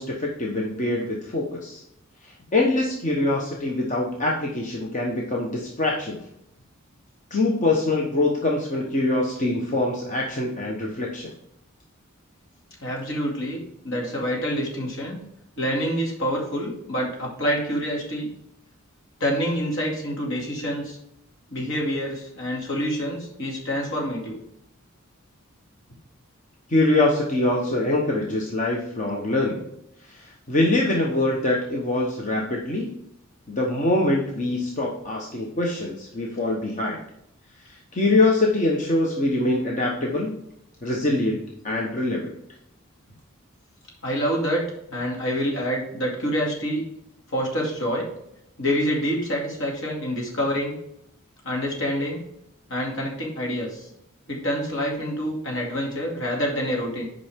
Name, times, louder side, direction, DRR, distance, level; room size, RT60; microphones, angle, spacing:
voice 1, 0.0-1.8 2.5-6.2 7.3-11.3 26.7-29.6 30.1-32.9 33.5-37.0 37.6-40.3 40.8-42.3, left 2 dB, 35° left, -1 dB, 1.0 m, -24 dB
voice 2, 12.8-15.2 15.6-18.3 19.2-21.0 21.5-24.4 44.0-44.6 44.9-46.8 47.3-48.1 48.6-50.8 51.4-52.2 52.7-53.9 54.3-57.1, equal, 60° left, -1 dB, 2.5 m, -27 dB
8.5 x 5.4 x 3.6 m, 0.78 s
head